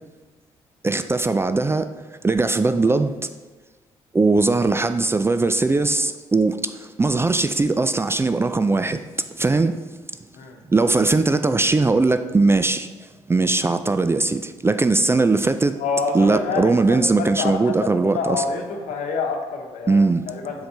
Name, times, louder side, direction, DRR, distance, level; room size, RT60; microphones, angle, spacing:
voice 1, 0.8-1.9 2.2-3.3 4.1-9.0 9.3-9.8 10.7-12.9 13.3-15.8 16.1-18.4 19.9-20.2, right 3 dB, 20° right, 0.4 m, -20 dB
voice 2, 15.8-20.7, left 4 dB, 65° left, 1.0 m, -27 dB
7.7 x 4.1 x 3.4 m
hypercardioid pair, 50°, 14 cm